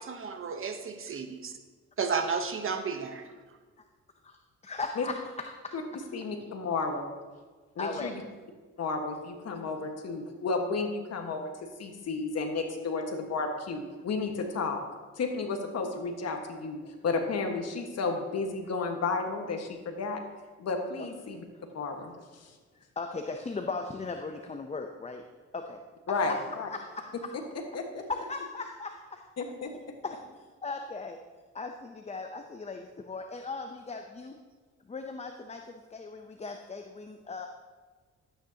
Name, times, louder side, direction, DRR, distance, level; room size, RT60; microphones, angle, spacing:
voice 1, 0.0-1.5 2.0-3.2, right 5 dB, 45° right, 7 dB, 1.0 m, -32 dB
voice 2, 4.6-5.7 7.8-8.4 21.0-21.6 22.7-25.2 25.5-25.8 26.1-26.4 26.7-27.3 28.1-29.2 30.0-30.2 30.6-31.2 31.5-34.4 34.8-37.5, left 3 dB, 20° left, 5 dB, 0.7 m, -38 dB
voice 3, 6.1-7.1 7.8-8.1 8.8-11.4 11.8-14.8 15.2-20.2 20.6-21.4 21.7-22.1 26.1-26.7 27.7-28.0 29.4-29.7, left 4 dB, 55° left, 4 dB, 1.5 m, -32 dB
12.5 x 9.1 x 2.8 m, 1.4 s
cardioid pair, 90°, 30 cm